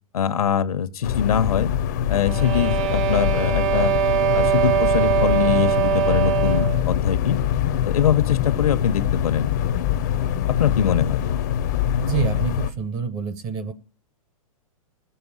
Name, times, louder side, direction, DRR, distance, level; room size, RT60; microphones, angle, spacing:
voice 1, 0.1-1.7 2.1-3.9 4.3-7.4 7.9-9.5 10.5-11.3, left 8 dB, 80° left, 1.2 m, -23 dB
sound 1, 1.0-12.7, left 10 dB, 30° left, 0.6 m, -24 dB
sound 2, 2.1-6.9, right 11 dB, 60° right, 1.1 m, -22 dB
voice 2, 12.0-13.7, right 7 dB, 15° right, 0.6 m, -27 dB
16.0 x 7.0 x 9.8 m
hypercardioid pair, 180°, 18 cm